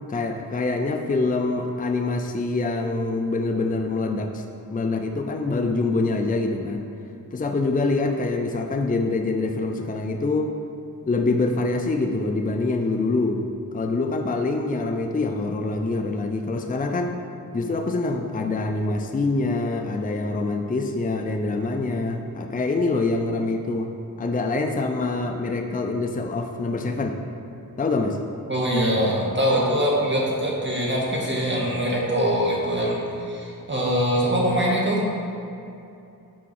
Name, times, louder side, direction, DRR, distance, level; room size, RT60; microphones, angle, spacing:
voice 1, 0.1-4.4 4.7-6.9 7.3-10.5 11.1-13.5 13.7-17.2 17.5-23.9 24.2-27.2 27.8-28.2, left 3 dB, 25° left, 4 dB, 0.5 m, -25 dB
voice 2, 28.5-35.0, equal, 30° right, -4 dB, 1.7 m, -23 dB
6.2 x 4.6 x 6.0 m, 2.7 s
wide cardioid pair, 65°, 35 cm